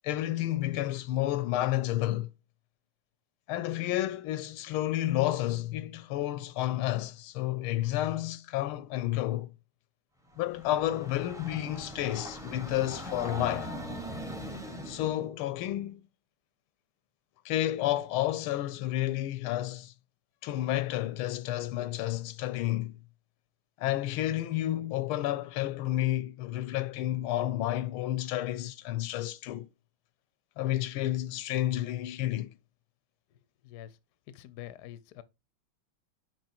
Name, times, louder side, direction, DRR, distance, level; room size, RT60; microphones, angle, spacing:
voice 1, 0.0-2.3 3.5-9.5 10.4-13.7 14.8-16.0 17.4-19.9 20.4-23.0 23.8-29.7 30.6-32.6, left 14 dB, 85° left, 1.5 m, -31 dB
Train, 10.3-15.2, equal, 5° right, 0.6 m, -40 dB
voice 2, 33.3-34.0 34.3-35.2, left 12 dB, 65° left, 1.0 m, -47 dB
6.2 x 5.0 x 4.3 m
omnidirectional pair, 2.3 m